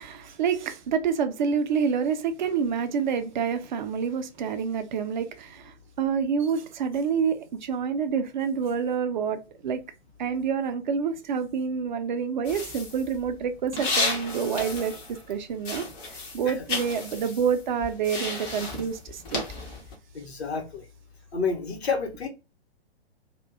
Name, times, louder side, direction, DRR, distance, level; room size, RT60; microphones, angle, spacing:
voice 1, 0.0-9.9 10.2-15.9 16.3-19.5, right 6 dB, 50° right, 0.4 m, -28 dB
sound 1, 12.5-15.3 15.6-19.9, left 3 dB, 15° left, 0.4 m, -33 dB
voice 2, 20.1-20.8 21.3-22.3, left 5 dB, 75° left, 0.8 m, -29 dB
2.5 x 2.1 x 2.4 m
figure-of-eight pair, 115°, 32 cm